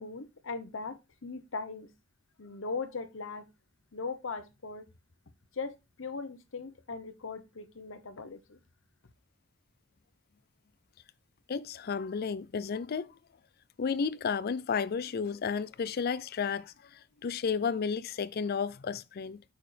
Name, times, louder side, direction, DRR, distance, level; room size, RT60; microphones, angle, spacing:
voice 1, 0.0-1.9 2.4-3.5 3.9-4.9 5.5-8.6, left 4 dB, 65° left, 0.8 m, -39 dB
voice 2, 11.5-13.1 13.8-19.4, left 6 dB, 50° left, 0.4 m, -32 dB
6.7 x 5.7 x 3.2 m
head